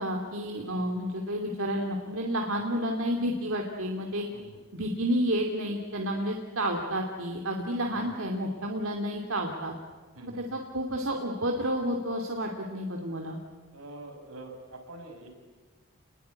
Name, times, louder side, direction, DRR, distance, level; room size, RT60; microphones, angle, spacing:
voice 1, 0.0-4.3 4.7-9.7 10.5-13.4, equal, 70° right, 1 dB, 2.7 m, -30 dB
voice 2, 10.2-10.6 13.7-15.3, right 2 dB, 85° right, 3 dB, 6.0 m, -46 dB
29.0 x 21.0 x 9.7 m, 1.4 s
head